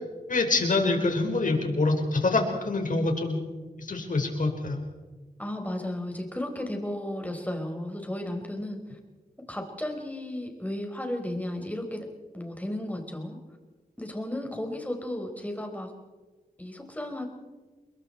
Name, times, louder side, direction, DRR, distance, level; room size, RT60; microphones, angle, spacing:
voice 1, 0.3-3.4 3.8-4.8, left 3 dB, 60° left, 3 dB, 4.8 m, -25 dB
voice 2, 5.4-9.0 9.5-12.0 12.3-13.4 14.0-15.9 16.6-17.3, left 1 dB, 10° left, 3 dB, 4.4 m, -34 dB
29.0 x 22.0 x 4.5 m, 1.3 s
wide cardioid pair, 80°, 15 cm